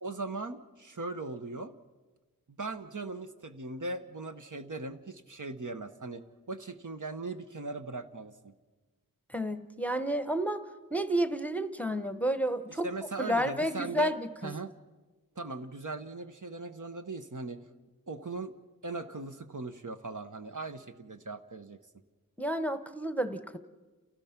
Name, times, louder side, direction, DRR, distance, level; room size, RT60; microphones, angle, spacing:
voice 1, 0.0-1.7 2.5-8.5 12.8-14.1 14.4-14.7 15.4-17.6 18.1-18.5 18.8-21.8, right 3 dB, 60° right, 8 dB, 1.1 m, -39 dB
voice 2, 9.3-10.6 10.9-12.9 13.2-14.5 22.4-23.6, right 1 dB, 5° left, 10 dB, 1.1 m, -31 dB
30.0 x 16.5 x 5.9 m, 1.2 s
wide cardioid pair, 55°, 35 cm